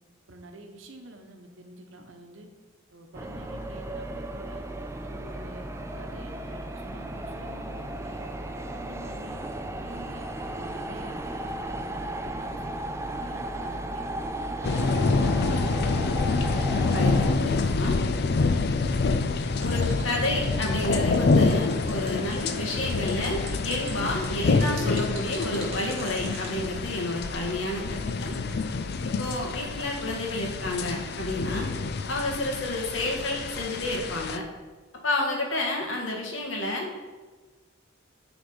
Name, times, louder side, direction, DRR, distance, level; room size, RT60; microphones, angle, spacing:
voice 1, 0.3-2.5 2.9-4.6 5.0-8.2 8.7-9.4 9.7-14.1 14.4-15.9, right 1 dB, 80° right, 5 dB, 1.0 m, -47 dB
sound 1, 3.1-17.4, right 1 dB, 15° right, 0.4 m, -35 dB
sound 2, 14.6-34.4, left 3 dB, 55° left, 0.5 m, -27 dB
voice 2, 16.9-18.0 19.6-28.4 29.0-31.7 32.1-34.4 35.0-36.9, left 1 dB, 85° left, 0 dB, 1.7 m, -30 dB
sound 3, 19.6-26.5, right 4 dB, 35° right, 1.9 m, -43 dB
10.0 x 4.0 x 5.4 m, 1.3 s
head